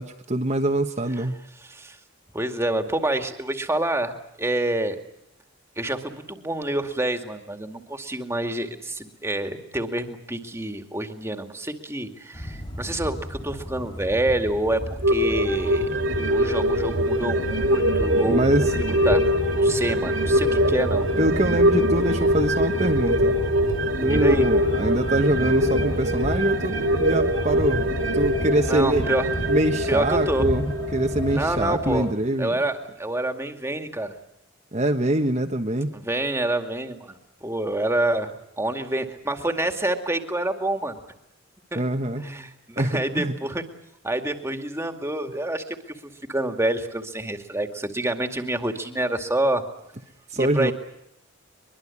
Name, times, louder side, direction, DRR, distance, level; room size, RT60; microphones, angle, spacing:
voice 1, 0.0-1.4 18.2-18.7 21.2-23.3 24.0-27.8 28.1-29.1 29.5-32.5 34.7-35.9 41.7-42.2 42.8-43.3 50.3-50.7, right 1 dB, 35° right, 3 dB, 1.4 m, -24 dB
voice 2, 1.6-2.0 2.3-4.1 4.4-5.0 5.8-15.9 16.3-18.5 18.7-21.1 24.1-24.4 28.5-29.3 29.9-30.5 31.3-32.1 32.4-34.1 35.9-41.0 41.7-41.8 42.2-43.6 44.0-49.6 50.3-50.7, right 1 dB, 15° right, 6 dB, 2.3 m, -27 dB
sound 1, 12.3-32.1, equal, 25° left, 3.9 m, -32 dB
sound 2, 15.0-31.8 32.2-32.3, equal, 65° right, 2.7 m, -23 dB
23.0 x 23.0 x 8.5 m, 0.82 s
head